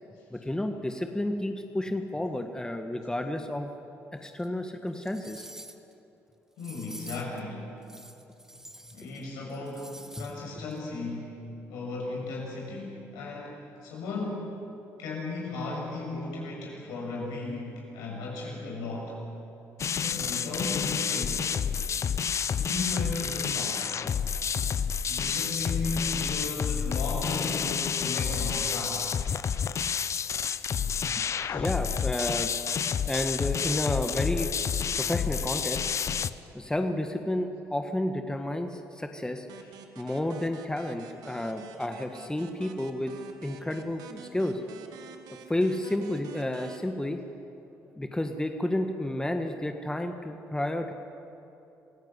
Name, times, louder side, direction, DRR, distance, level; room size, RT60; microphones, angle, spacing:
voice 1, 0.3-3.7 4.1-5.5 31.5-32.5 33.1-34.5 35.0-35.9 36.5-39.5 39.9-43.1 43.4-44.6 45.5-47.2 47.9-50.9, left 1 dB, 10° left, 5 dB, 1.7 m, -31 dB
sound 1, 4.4-4.5 4.9-5.9 6.6-7.4 7.8-9.2 9.5-10.4 10.7-10.8, right 1 dB, 10° right, 1.8 m, -47 dB
voice 2, 6.6-7.8 8.9-11.3 11.7-14.5 15.0-19.2 20.0-21.4 22.6-23.9 25.1-29.1 30.9-31.7 39.6-39.7, left 2 dB, 80° left, -2 dB, 6.9 m, -36 dB
sound 2, 19.8-36.3, left 7 dB, 50° left, 0.8 m, -29 dB
sound 3, 39.5-46.8, right 6 dB, 75° right, 1.6 m, -49 dB
26.5 x 16.5 x 8.2 m, 3.0 s
supercardioid pair, 60°, 6 cm